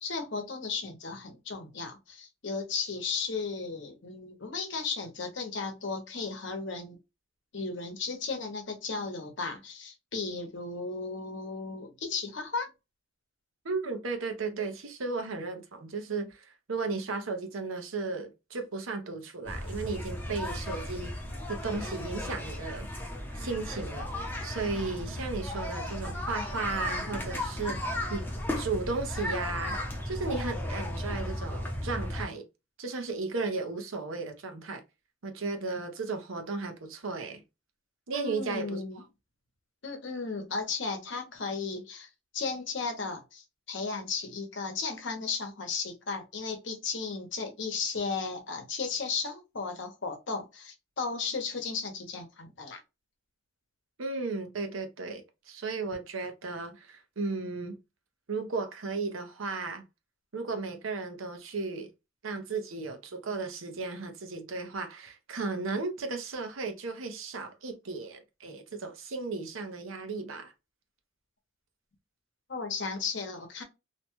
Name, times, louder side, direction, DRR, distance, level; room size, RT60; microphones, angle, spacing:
voice 1, 0.0-7.0 7.5-12.7 38.1-39.0 39.8-42.1 42.3-52.8 72.5-73.6, left 4 dB, 60° left, 0.8 m, -35 dB
voice 2, 13.6-21.1 21.5-22.9 23.3-24.1 24.4-28.2 28.6-29.8 30.1-32.4 32.8-34.8 35.2-37.4 38.1-39.0 54.0-57.8 58.3-59.8 60.3-61.9 62.2-70.5, right 3 dB, 85° right, 0.7 m, -35 dB
sound 1, 19.5-32.3, left 1 dB, 10° left, 0.6 m, -35 dB
2.7 x 2.2 x 2.9 m
head